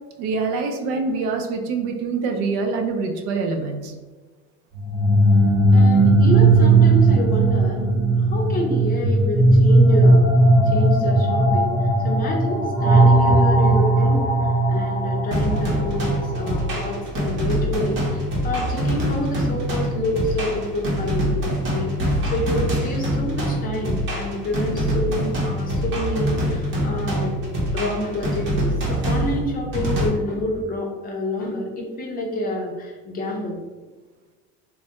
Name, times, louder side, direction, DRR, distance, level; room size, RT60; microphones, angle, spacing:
voice 1, 0.2-3.9, right 4 dB, 70° right, 4 dB, 0.5 m, -25 dB
sound 1, 4.7-16.6, right 2 dB, 10° right, 1.0 m, -17 dB
voice 2, 5.7-10.3 10.6-11.7 12.0-27.4 27.7-33.6, left 1 dB, 30° left, 0 dB, 0.5 m, -28 dB
sound 2, 15.3-30.1, equal, 40° right, 0.8 m, -24 dB
3.1 x 2.2 x 2.8 m, 1.3 s
cardioid pair, 140°, 31 cm